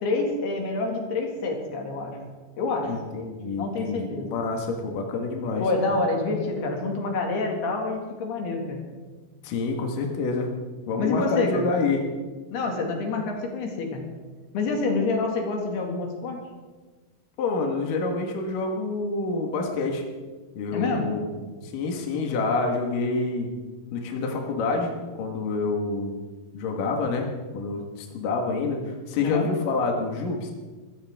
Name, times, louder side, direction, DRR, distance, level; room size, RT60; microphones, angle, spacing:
voice 1, 0.0-2.2 2.6-2.9 3.6-4.3 5.6-8.8 11.0-11.7 12.5-14.0 14.5-16.4 20.7-21.1 29.2-29.5, left 3 dB, 85° left, 1 dB, 4.3 m, -27 dB
voice 2, 2.9-5.6 9.4-10.5 10.9-12.0 17.4-20.0 20.5-23.5 23.9-26.1 26.5-30.5, left 3 dB, 65° left, 1 dB, 3.2 m, -27 dB
23.5 x 14.5 x 3.7 m, 1.3 s
omnidirectional pair, 4.5 m